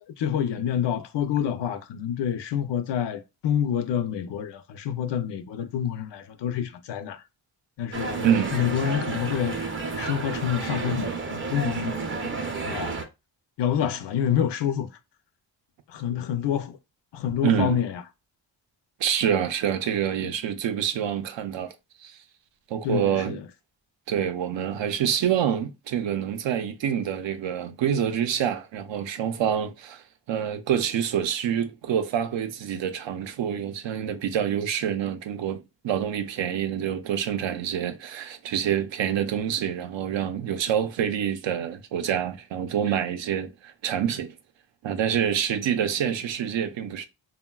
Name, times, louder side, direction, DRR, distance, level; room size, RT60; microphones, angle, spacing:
voice 1, 0.2-7.2 7.8-13.0 13.6-14.9 15.9-16.8 17.1-18.0 20.2-20.3 22.8-23.4, left 9 dB, 65° left, 0.5 m, -28 dB
sound 1, 7.9-13.0, right 4 dB, 30° right, 0.5 m, -31 dB
voice 2, 8.2-8.5 17.4-17.8 19.0-21.7 22.0-22.2 22.7-23.4 24.1-44.3 44.8-47.1, right 9 dB, 75° right, 0.5 m, -27 dB
3.7 x 2.2 x 2.2 m
wide cardioid pair, 130°, 45 cm